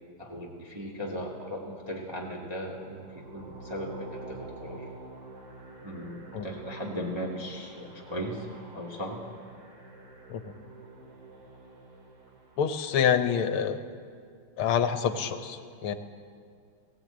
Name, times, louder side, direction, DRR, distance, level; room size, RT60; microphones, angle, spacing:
voice 1, 0.2-4.8 5.8-8.5 8.7-9.2, equal, 10° right, -3 dB, 1.9 m, -37 dB
sound 1, 2.9-13.0, right 2 dB, 90° right, 3.4 m, -47 dB
voice 2, 12.6-13.8 14.6-15.9, left 8 dB, 80° left, 9 dB, 1.9 m, -27 dB
20.0 x 16.5 x 8.9 m, 2.3 s
omnidirectional pair, 2.3 m